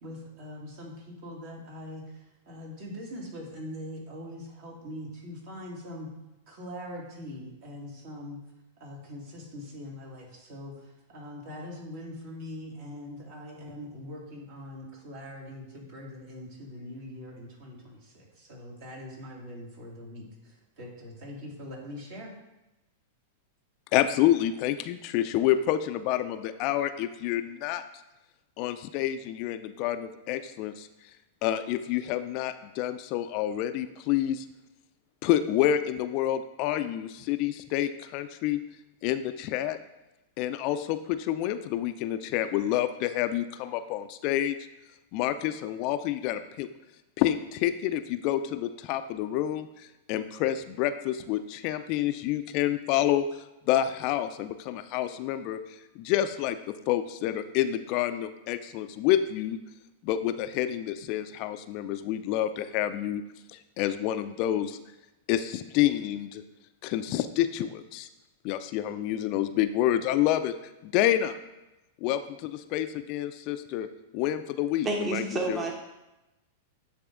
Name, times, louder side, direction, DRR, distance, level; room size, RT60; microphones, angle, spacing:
voice 1, 0.0-6.1 6.5-8.4 8.8-22.3, left 1 dB, 55° right, -2 dB, 2.2 m, -42 dB
voice 2, 23.9-27.8 28.6-30.9 31.4-34.4 35.2-38.6 39.0-39.8 40.4-44.6 45.1-46.7 47.2-55.6 56.0-59.6 60.0-63.2 63.5-64.8 65.3-66.4 66.8-68.1 68.4-70.5 70.8-71.4 72.0-73.9 74.1-75.6, left 12 dB, 50° left, 10 dB, 0.4 m, -28 dB
voice 3, 74.8-75.7, right 3 dB, 25° right, 2 dB, 1.0 m, -29 dB
9.7 x 3.3 x 3.7 m, 0.97 s
hypercardioid pair, 100°, 0 cm